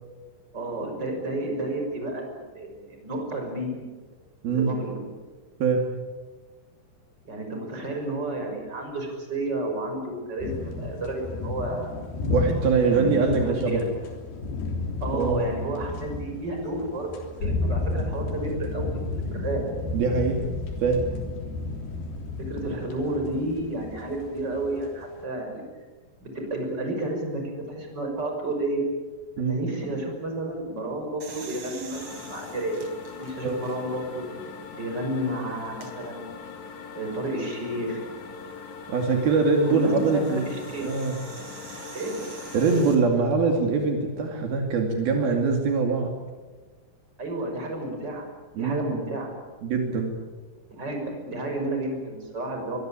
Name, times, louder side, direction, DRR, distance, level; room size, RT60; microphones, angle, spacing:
voice 1, 0.5-3.8 4.5-5.0 7.2-11.9 12.9-13.8 15.0-17.1 17.4-19.6 22.4-25.6 26.2-28.8 29.4-34.3 34.7-36.5 36.9-38.0 39.6-40.8 41.9-42.3 47.2-48.3 48.6-49.3 50.7-52.8, right 1 dB, 25° right, 3 dB, 6.7 m, -31 dB
voice 2, 4.4-4.7 5.6-5.8 12.3-13.8 15.1-15.5 19.9-20.4 20.8-21.0 29.4-29.5 33.4-33.6 38.9-40.5 40.8-41.2 42.5-46.1 48.6-49.0 49.6-50.1, right 4 dB, 70° right, 3 dB, 4.3 m, -23 dB
sound 1, 10.4-25.2, left 3 dB, 70° left, 5.2 m, -32 dB
sound 2, 31.2-34.1 34.7-34.8 35.6-35.9 38.1-42.9, right 4 dB, 40° right, 4.5 m, -45 dB
sound 3, 31.9-42.8, left 5 dB, 50° left, 3.5 m, -41 dB
23.5 x 23.5 x 8.9 m, 1.3 s
omnidirectional pair, 4.5 m